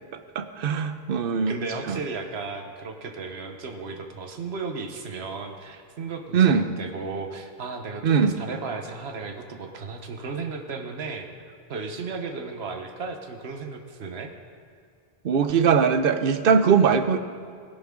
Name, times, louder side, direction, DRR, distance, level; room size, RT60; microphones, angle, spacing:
voice 1, 0.3-1.5 1.9-2.0 6.3-6.7 8.0-8.3 15.2-17.2, right 6 dB, 65° right, 10 dB, 0.9 m, -20 dB
voice 2, 1.5-11.3 11.7-14.3, right 4 dB, 85° right, 5 dB, 1.3 m, -34 dB
17.5 x 10.5 x 3.7 m, 2.2 s
omnidirectional pair, 1.0 m